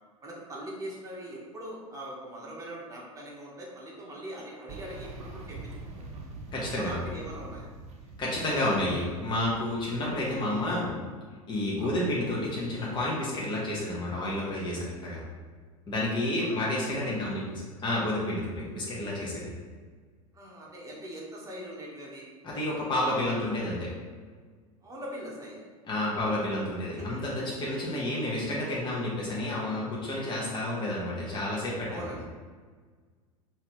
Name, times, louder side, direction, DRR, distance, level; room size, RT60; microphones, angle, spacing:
voice 1, 0.2-5.6 5.9-6.1 6.8-7.7 11.8-11.9 16.0-17.2 20.3-22.3 24.8-25.7 27.0-27.2 31.9-32.3, right 1 dB, 15° right, -4 dB, 1.4 m, -42 dB
sound 1, 4.7-10.9, right 3 dB, 35° right, 0.8 m, -44 dB
voice 2, 6.5-7.0 8.2-10.9 11.5-15.2 15.9-17.4 17.8-19.5 22.4-23.9 25.9-32.0, left 1 dB, 25° left, -5 dB, 1.2 m, -30 dB
5.6 x 2.9 x 3.2 m, 1.5 s
figure-of-eight pair, 85°, 19 cm